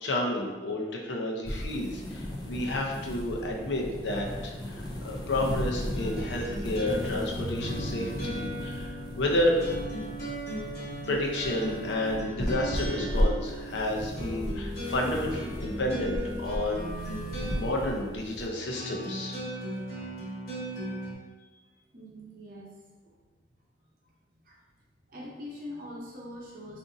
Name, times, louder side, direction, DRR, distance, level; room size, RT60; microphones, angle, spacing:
voice 1, 0.0-9.6 11.1-16.9 17.5-19.4, left 1 dB, 85° left, 0 dB, 0.6 m, -31 dB
sound 1, 1.4-18.5, equal, 25° left, 0.4 m, -35 dB
sound 2, 5.9-21.1, equal, 55° left, 1.1 m, -37 dB
voice 2, 21.9-22.7 23.0-23.2 24.0-24.1 24.4-24.6 25.1-26.8, left 1 dB, 50° right, -3 dB, 0.7 m, -43 dB
3.8 x 2.6 x 2.5 m, 1.2 s
head